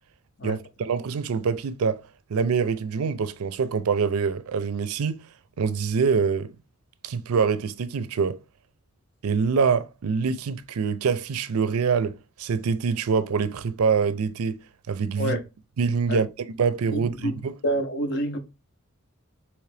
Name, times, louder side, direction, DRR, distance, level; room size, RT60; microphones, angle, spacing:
voice 1, 0.4-2.0 2.3-5.2 5.6-6.5 7.0-8.4 9.2-14.6 14.9-15.4 15.8-16.3 16.6-17.6, right 5 dB, 75° right, 0.4 m, -25 dB
voice 2, 16.9-17.4 17.6-18.4, right 1 dB, 50° left, 0.7 m, -27 dB
3.7 x 3.0 x 3.3 m
head